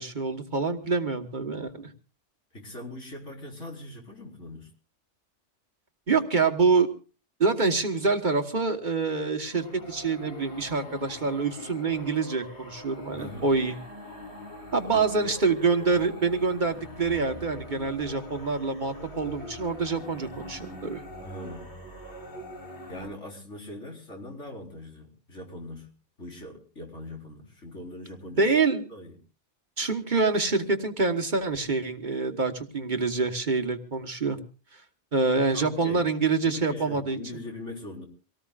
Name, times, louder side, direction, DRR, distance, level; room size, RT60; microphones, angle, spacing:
voice 1, 0.0-1.9 6.1-6.9 7.4-13.8 14.7-21.0 28.4-28.9 29.8-34.4 35.1-37.2, right 4 dB, 40° right, 6 dB, 1.4 m, -26 dB
voice 2, 2.5-4.7 13.1-13.5 14.8-15.3 21.2-21.7 22.9-25.9 26.2-28.5 28.9-29.1 35.5-36.1 36.4-38.0, left 1 dB, 80° left, 0 dB, 4.6 m, -41 dB
sound 1, 9.4-23.1, left 1 dB, 65° left, 3.6 m, -43 dB
25.0 x 18.0 x 2.4 m, 0.37 s
omnidirectional pair, 1.2 m